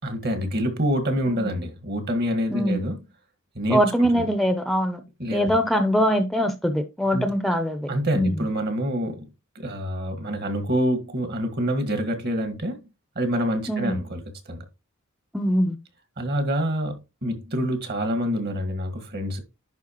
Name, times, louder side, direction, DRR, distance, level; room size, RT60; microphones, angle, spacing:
voice 1, 0.0-3.0 3.6-4.3 5.2-5.5 7.1-7.3 7.9-9.3 9.6-12.8 13.2-14.7 16.2-19.4, equal, 50° right, 1.7 m, -26 dB
voice 2, 3.7-5.0 5.3-7.9 8.1-8.4 13.7-14.0 15.3-15.8, equal, ahead, 0.6 m, -22 dB
10.5 x 4.4 x 3.0 m
head